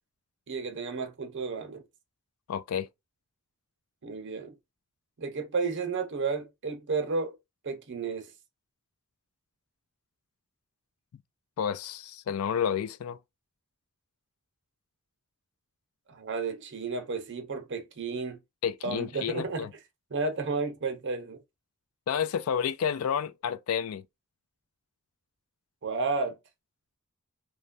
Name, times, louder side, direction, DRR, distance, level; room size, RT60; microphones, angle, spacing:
voice 1, 0.5-1.8 4.0-4.6 5.2-7.4 7.6-8.3 16.1-18.4 18.8-19.7 20.1-21.4 25.8-26.4, right 4 dB, 60° right, 0.7 m, -32 dB
voice 2, 2.5-2.9 11.6-13.2 18.6-19.7 22.1-24.0, left 8 dB, 75° left, 0.3 m, -30 dB
3.1 x 2.2 x 2.5 m
head